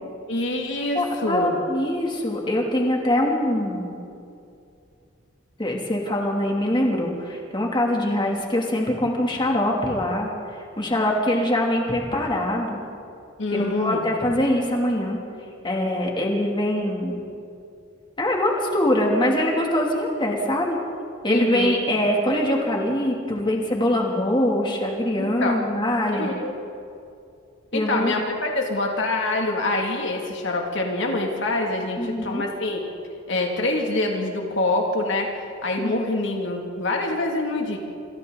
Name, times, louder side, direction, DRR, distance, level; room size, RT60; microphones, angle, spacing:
voice 1, 0.3-1.6 13.4-14.0 21.3-21.7 25.2-25.6 26.1-26.5 27.7-32.8 33.3-35.3 35.6-37.8, left 2 dB, 60° left, 1 dB, 2.5 m, -25 dB
voice 2, 0.9-4.0 5.6-12.8 13.5-15.2 15.6-17.2 18.2-20.8 21.2-26.3 27.7-28.1 32.0-32.4 35.8-36.0, left 1 dB, 25° left, -1 dB, 2.8 m, -23 dB
28.0 x 26.5 x 4.1 m, 2.5 s
head